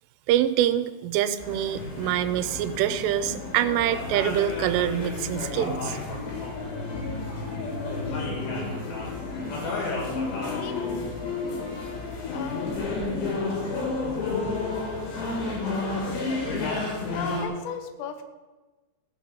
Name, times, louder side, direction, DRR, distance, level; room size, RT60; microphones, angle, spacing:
voice 1, 0.3-6.0, right 11 dB, 80° right, 11 dB, 3.1 m, -25 dB
sound 1, 1.4-17.4, left 3 dB, 60° left, 5.5 m, -31 dB
voice 2, 10.5-10.9 12.3-13.1 15.5-15.9 17.1-18.2, left 7 dB, 80° left, 8 dB, 3.6 m, -37 dB
sound 2, 10.8-16.2, left 2 dB, 15° left, 3.5 m, -48 dB
15.5 x 6.7 x 8.3 m, 1.2 s
omnidirectional pair, 5.8 m